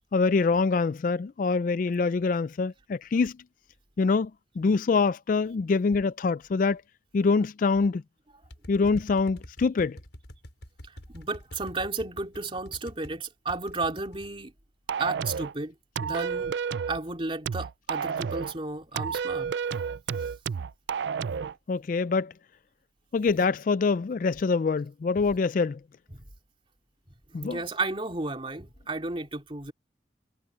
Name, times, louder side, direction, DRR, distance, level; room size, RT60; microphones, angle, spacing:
voice 1, 0.1-3.3 4.0-4.3 4.6-6.8 7.1-8.0 8.7-10.0 21.7-22.3 23.1-25.8 27.3-27.6, left 4 dB, 45° left, 0.3 m, -25 dB
sound 1, 8.4-13.1 13.5-14.3, equal, 75° left, 5.8 m, -46 dB
voice 2, 11.1-14.5 15.0-15.7 16.0-16.5 16.9-19.5 27.4-29.7, right 3 dB, 30° right, 3.0 m, -33 dB
sound 2, 14.9-15.5 16.0-17.0 17.5-18.5 19.0-21.5, right 6 dB, 70° right, 0.4 m, -31 dB
head